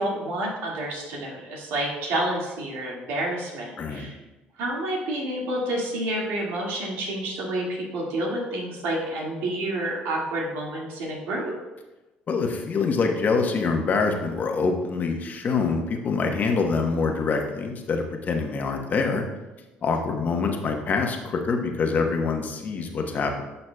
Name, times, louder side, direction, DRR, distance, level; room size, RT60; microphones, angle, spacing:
voice 1, 0.0-4.2 4.6-11.5 20.0-20.2, right 1 dB, 80° right, -3 dB, 2.0 m, -29 dB
voice 2, 3.8-4.1 12.3-19.3 19.8-23.4, left 4 dB, 45° left, 3 dB, 1.0 m, -25 dB
11.0 x 5.6 x 2.3 m, 1.1 s
supercardioid pair, 80°, 4 cm